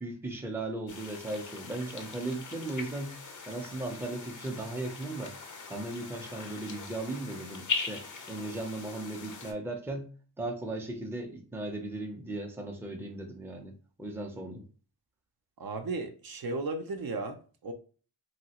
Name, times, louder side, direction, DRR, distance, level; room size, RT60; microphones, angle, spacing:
voice 1, 0.0-3.1 3.4-5.3 5.7-10.1 10.4-13.7 14.0-14.6, right 2 dB, 5° right, 0.5 m, -37 dB
sound 1, 0.9-9.5, left 5 dB, 45° left, 0.6 m, -40 dB
voice 2, 15.6-17.7, right 3 dB, 55° right, 0.5 m, -35 dB
3.2 x 2.3 x 2.9 m
wide cardioid pair, 85°, 43 cm